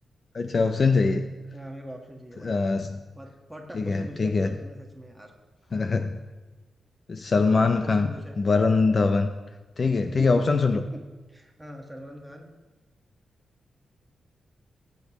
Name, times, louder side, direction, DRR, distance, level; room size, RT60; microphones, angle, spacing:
voice 1, 0.3-1.3 2.4-3.0 3.7-4.5 5.7-6.2 7.1-8.1 8.4-9.3 9.8-10.8, left 4 dB, 35° left, 8 dB, 0.5 m, -22 dB
voice 2, 1.5-2.8 3.1-5.3 7.5-8.4 10.0-10.4 11.3-12.5, equal, 5° right, 1 dB, 1.4 m, -42 dB
19.0 x 8.0 x 3.0 m, 1.2 s
wide cardioid pair, 140°, 0 cm